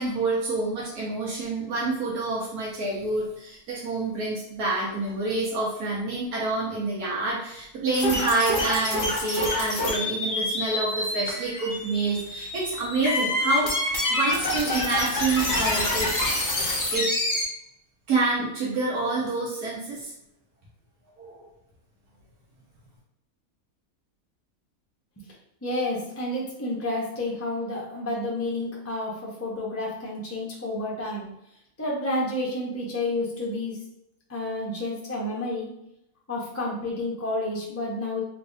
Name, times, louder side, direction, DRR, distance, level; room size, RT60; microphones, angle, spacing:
voice 1, 0.0-16.1 16.5-17.1 18.1-20.1 21.2-21.5, right 3 dB, 90° right, -5 dB, 1.4 m, -28 dB
sound 1, 7.9-17.4, left 1 dB, 35° left, 1.0 m, -27 dB
voice 2, 25.6-31.3 31.8-33.8 34.3-35.7 36.3-38.2, left 1 dB, 15° left, -4 dB, 0.5 m, -30 dB
3.5 x 3.2 x 2.6 m, 0.79 s
omnidirectional pair, 1.5 m